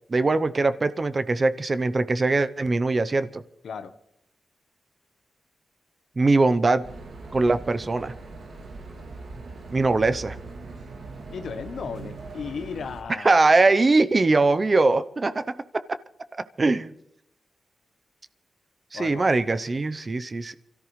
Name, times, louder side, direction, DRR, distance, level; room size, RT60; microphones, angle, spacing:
voice 1, 0.1-3.4 6.2-6.9 7.3-8.1 9.7-10.4 13.2-15.6 16.6-16.9 18.9-20.5, right 3 dB, 35° right, 12 dB, 0.7 m, -21 dB
sound 1, 6.8-13.0, right 3 dB, 80° right, 2.5 m, -41 dB
voice 2, 11.3-13.4 18.9-19.3, left 6 dB, 85° left, 10 dB, 1.0 m, -35 dB
29.0 x 13.5 x 3.2 m, 0.77 s
wide cardioid pair, 95°, 0 cm